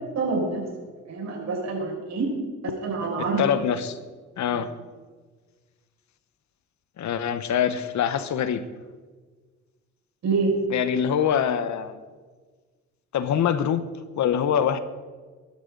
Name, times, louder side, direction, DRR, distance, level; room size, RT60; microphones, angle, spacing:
voice 1, 0.1-0.7 1.1-2.3 2.6-3.4 4.5-4.6 10.2-10.6, right 4 dB, 60° right, -2 dB, 6.2 m, -26 dB
voice 2, 3.4-4.0 4.4-4.7 7.0-8.6 10.7-12.0 13.1-13.8 14.2-14.8, left 8 dB, 70° left, 12 dB, 1.2 m, -24 dB
23.0 x 12.0 x 4.0 m, 1.4 s
cardioid pair, 90°, 30 cm